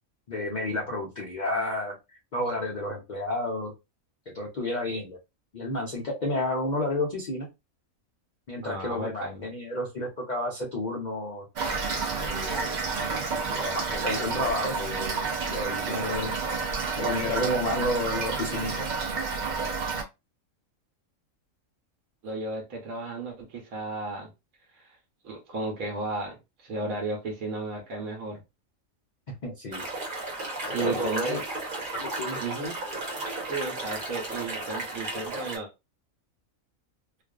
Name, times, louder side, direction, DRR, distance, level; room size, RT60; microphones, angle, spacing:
voice 1, 0.3-3.7 4.3-5.2 5.5-7.5 8.5-11.5 12.2-12.8 13.5-15.1 15.5-16.4 17.0-18.8 29.4-29.8 30.6-31.4 31.9-32.4, left 1 dB, 90° left, 0.4 m, -31 dB
voice 2, 8.6-9.5 22.2-24.3 24.7-25.0 25.2-28.4 30.7-31.4 32.4-32.8 33.4-35.7, right 3 dB, 90° right, 1.2 m, -34 dB
Toilet flush / Fill (with liquid), 11.6-20.0, right 4 dB, 60° right, 0.4 m, -30 dB
sound 1, 29.7-35.6, right 2 dB, 45° right, 0.9 m, -34 dB
2.4 x 2.3 x 2.3 m
omnidirectional pair, 1.4 m